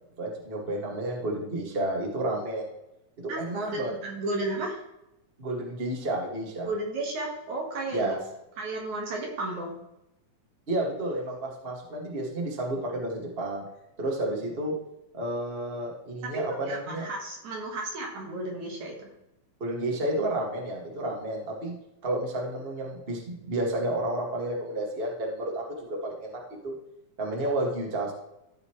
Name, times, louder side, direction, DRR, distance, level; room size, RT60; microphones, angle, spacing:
voice 1, 0.2-2.7 3.2-3.9 5.4-6.7 7.9-8.2 10.7-13.6 14.0-14.7 15.1-17.0 19.6-21.7 22.0-26.7 27.2-28.1, right 1 dB, 20° right, -1 dB, 1.6 m, -31 dB
voice 2, 3.3-4.8 6.6-8.2 8.6-9.8 16.2-19.1, right 2 dB, 60° right, 0 dB, 2.9 m, -33 dB
15.5 x 5.7 x 3.2 m, 0.89 s
omnidirectional pair, 4.1 m